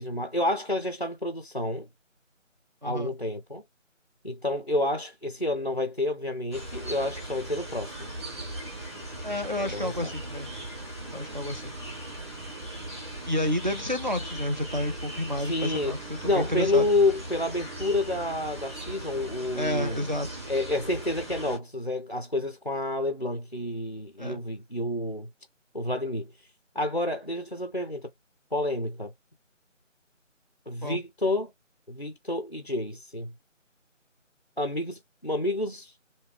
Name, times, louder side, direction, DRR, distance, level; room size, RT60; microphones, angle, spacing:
voice 1, 0.0-1.9 2.8-3.6 4.2-8.1 9.6-10.1 15.4-16.0 16.2-20.0 20.5-25.3 25.7-26.3 26.8-28.1 28.5-29.1 30.7-31.5 31.9-33.3 34.6-35.9, left 2 dB, 45° left, 0.4 m, -29 dB
voice 2, 2.8-3.1 9.2-10.5 11.1-11.7 13.3-16.9 19.6-20.4 24.2-24.4 30.8-31.0, left 1 dB, 35° right, 0.5 m, -30 dB
sound 1, 6.5-21.6, right 1 dB, 20° right, 1.2 m, -39 dB
3.3 x 2.6 x 3.2 m
figure-of-eight pair, 165°, 39 cm